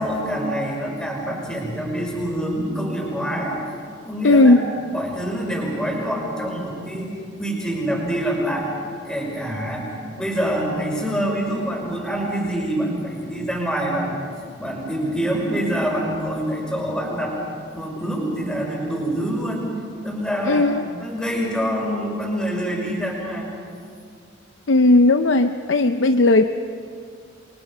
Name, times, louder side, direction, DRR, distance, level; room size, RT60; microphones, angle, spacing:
voice 1, 0.0-3.6 4.0-4.6 4.9-7.1 7.4-8.7 9.0-14.3 14.6-17.4 17.7-19.7 20.0-20.6 21.0-23.5, equal, 5° left, -3 dB, 6.0 m, -26 dB
voice 2, 4.2-4.6 20.5-20.8 24.7-26.4, left 2 dB, 75° left, 8 dB, 0.7 m, -15 dB
29.5 x 24.0 x 5.6 m, 2.2 s
head